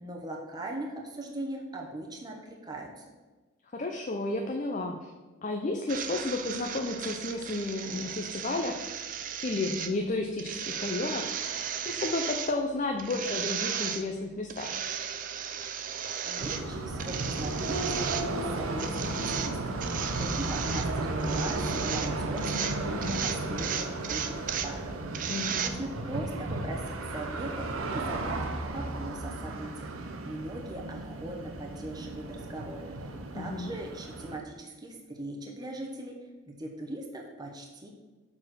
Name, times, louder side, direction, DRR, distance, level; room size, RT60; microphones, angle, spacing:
voice 1, 0.0-3.0 16.2-36.1 36.5-37.9, right 1 dB, 20° right, 0 dB, 0.9 m, -40 dB
voice 2, 3.7-5.1 5.4-8.8 9.4-14.8 25.3-25.7 33.3-33.7, left 2 dB, 35° left, 3 dB, 0.5 m, -32 dB
sound 1, 5.9-25.7, right 8 dB, 40° right, 0.4 m, -36 dB
sound 2, 16.4-34.4, right 2 dB, 85° right, 0.8 m, -34 dB
6.7 x 4.2 x 6.3 m, 1.2 s
head